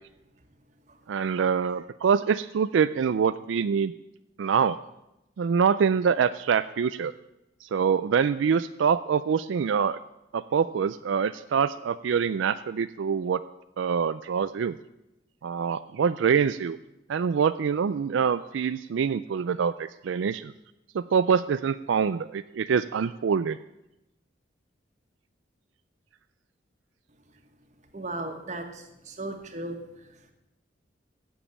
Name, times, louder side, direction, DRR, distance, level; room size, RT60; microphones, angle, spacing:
voice 1, 1.1-3.9 4.4-4.8 5.4-7.1 7.6-10.0 10.3-13.4 13.8-14.8 15.4-16.8 17.1-20.5 20.9-23.6, right 6 dB, 75° right, 13 dB, 0.4 m, -25 dB
voice 2, 27.9-29.8, right 2 dB, 40° right, 5 dB, 1.5 m, -36 dB
16.5 x 7.2 x 7.3 m, 0.91 s
head